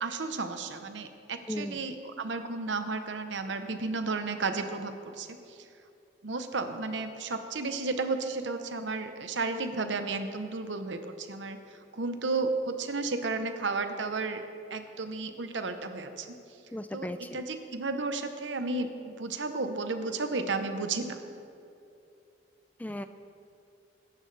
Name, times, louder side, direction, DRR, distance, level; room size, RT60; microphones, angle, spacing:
voice 1, 0.0-5.6 6.2-11.6 11.9-14.4 14.7-16.4 16.9-17.1 17.3-21.2, right 3 dB, 90° right, 8 dB, 0.9 m, -33 dB
voice 2, 1.5-1.9 16.7-17.4 22.8-23.1, left 1 dB, 10° left, 10 dB, 0.4 m, -36 dB
21.0 x 10.5 x 3.4 m, 2.6 s
head